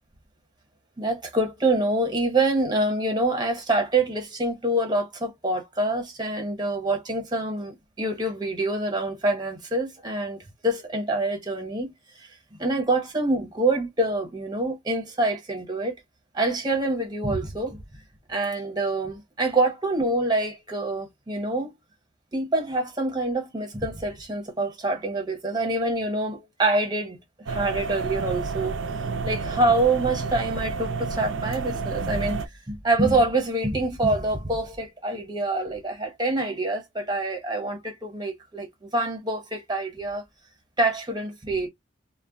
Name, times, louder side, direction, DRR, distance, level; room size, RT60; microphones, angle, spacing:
voice 1, 1.0-11.9 12.6-15.9 16.3-17.8 18.3-21.7 22.3-27.2 27.5-28.7 29.2-40.2 40.8-41.7, right 2 dB, 20° right, 0.9 m, -26 dB
sound 1, 27.5-32.5, right 4 dB, 75° right, 0.4 m, -30 dB
2.2 x 2.1 x 3.7 m
head